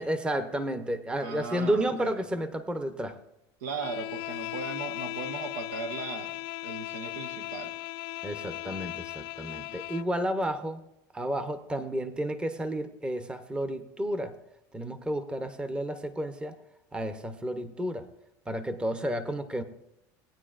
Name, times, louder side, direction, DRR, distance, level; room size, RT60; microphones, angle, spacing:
voice 1, 0.0-3.2 8.2-10.8 11.1-14.3 14.7-16.5 16.9-18.1 18.5-19.6, right 1 dB, 10° right, 10 dB, 0.8 m, -31 dB
voice 2, 1.2-2.5 3.6-7.8, right 4 dB, 90° right, 7 dB, 1.3 m, -38 dB
Bowed string instrument, 3.8-10.1, left 20 dB, 65° left, 0.4 m, -37 dB
18.5 x 9.3 x 2.5 m, 0.81 s
supercardioid pair, 125°, 9 cm